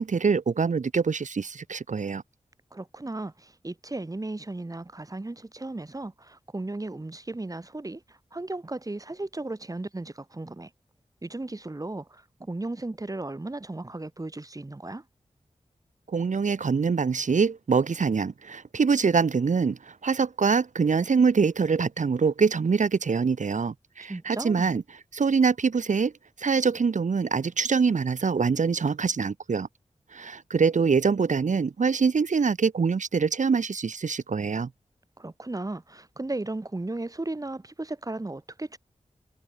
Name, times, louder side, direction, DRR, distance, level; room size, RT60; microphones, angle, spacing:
voice 1, 0.0-2.2 16.1-24.8 25.1-26.1 26.4-29.7 30.1-34.7, right 5 dB, 90° right, 3.0 m, -24 dB
voice 2, 2.7-10.7 11.2-15.0 24.1-24.7 35.2-38.8, right 2 dB, 30° right, 6.5 m, -35 dB
wide cardioid pair, 105°, 12 cm